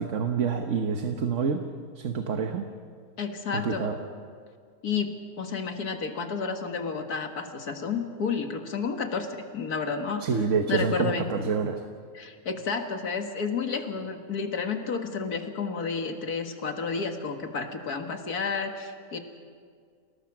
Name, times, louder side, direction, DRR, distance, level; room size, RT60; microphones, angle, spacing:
voice 1, 0.0-1.6 2.0-2.7 3.5-3.9 10.2-11.8, right 6 dB, 55° right, 5 dB, 1.4 m, -27 dB
voice 2, 3.2-3.9 4.8-10.3 10.7-11.3 12.1-19.2, left 5 dB, 75° left, 5 dB, 2.2 m, -31 dB
29.0 x 18.5 x 6.1 m, 2.1 s
omnidirectional pair, 1.6 m